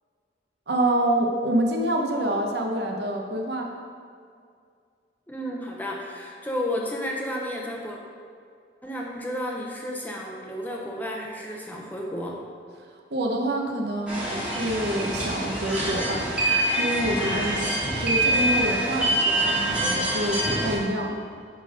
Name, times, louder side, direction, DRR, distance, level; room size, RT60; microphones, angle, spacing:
voice 1, 0.7-3.7 13.1-16.3 16.8-17.7 18.0-21.1, right 1 dB, 65° right, 1 dB, 0.9 m, -27 dB
voice 2, 5.3-8.0 8.8-12.4, equal, 10° left, -1 dB, 0.7 m, -32 dB
sound 1, 14.1-20.8, right 1 dB, 5° right, 1.4 m, -25 dB
9.1 x 3.5 x 5.2 m, 2.2 s
head